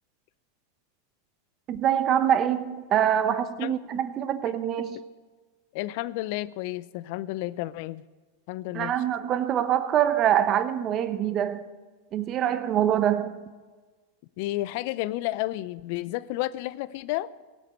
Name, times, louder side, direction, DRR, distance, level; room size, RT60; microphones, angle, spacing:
voice 1, 1.7-5.0 8.7-11.6 12.1-13.4, right 10 dB, 40° right, 11 dB, 1.0 m, -24 dB
voice 2, 5.7-8.0 8.5-8.9 14.4-17.3, left 17 dB, 60° left, 17 dB, 0.6 m, -31 dB
17.5 x 7.6 x 8.2 m, 1.4 s
hypercardioid pair, 110°, 0 cm